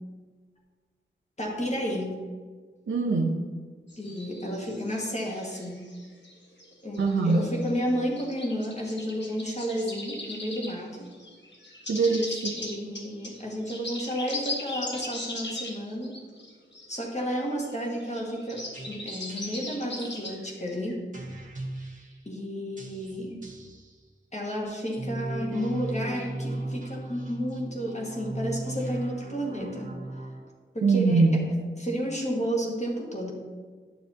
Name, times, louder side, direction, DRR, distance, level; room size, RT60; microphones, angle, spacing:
voice 1, 1.4-2.2 4.0-5.9 6.8-11.1 12.6-16.2 16.9-21.0 22.2-23.4 24.3-29.9 30.7-31.3 31.8-33.3, equal, 35° left, -2 dB, 1.7 m, -32 dB
voice 2, 2.9-3.4 7.0-7.4 11.9-12.6 30.8-31.5, right 3 dB, 90° right, 1 dB, 0.7 m, -23 dB
sound 1, 3.9-6.3 6.6-10.8 11.1-17.0 17.2-17.3 17.5-20.9, left 2 dB, 60° left, 1.5 m, -39 dB
sound 2, 18.7-20.2 21.1-22.2 22.8-23.9 24.8-30.4, right 1 dB, 40° right, 1.5 m, -37 dB
9.4 x 6.6 x 2.8 m, 1.5 s
wide cardioid pair, 60°, 20 cm